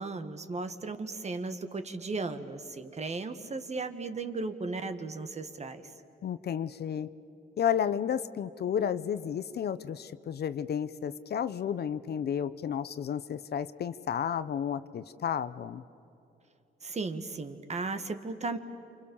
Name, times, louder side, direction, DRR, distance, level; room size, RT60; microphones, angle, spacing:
voice 1, 0.0-5.8 16.8-18.6, right 3 dB, 35° right, 8 dB, 1.8 m, -36 dB
voice 2, 6.2-7.1 7.6-15.8, left 8 dB, 55° left, 13 dB, 0.8 m, -32 dB
29.0 x 27.0 x 7.1 m, 2.9 s
cardioid pair, 90°, 20 cm